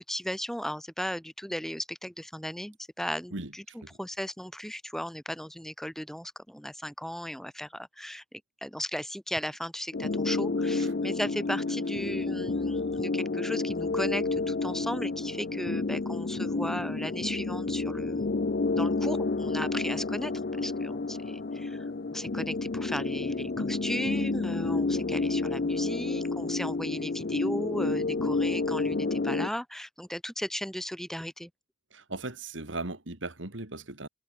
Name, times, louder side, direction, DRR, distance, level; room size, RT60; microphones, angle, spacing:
voice 1, 0.0-18.3 18.8-20.3 20.6-21.8 22.1-31.5, equal, ahead, 2.0 m, -36 dB
sound 1, 9.9-29.5, left 3 dB, 55° left, 0.6 m, -30 dB
voice 2, 31.9-34.1, right 2 dB, 85° right, 3.1 m, -37 dB
head